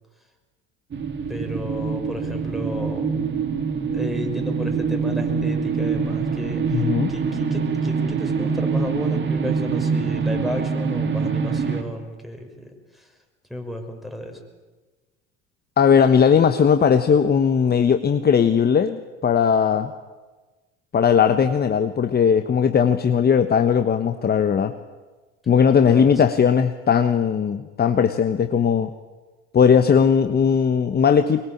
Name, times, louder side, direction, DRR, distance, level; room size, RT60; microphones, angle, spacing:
sound 1, 0.9-11.8, right 5 dB, 35° right, 3.0 m, -24 dB
voice 1, 1.3-3.2 3.9-13.1 13.5-14.4 25.9-26.1, left 1 dB, ahead, 3 dB, 6.0 m, -33 dB
voice 2, 6.7-7.1 15.8-19.9 20.9-24.8 25.5-28.9 29.5-31.4, left 7 dB, 30° left, 8 dB, 1.3 m, -18 dB
24.0 x 22.0 x 8.8 m, 1.3 s
hypercardioid pair, 70°, 34 cm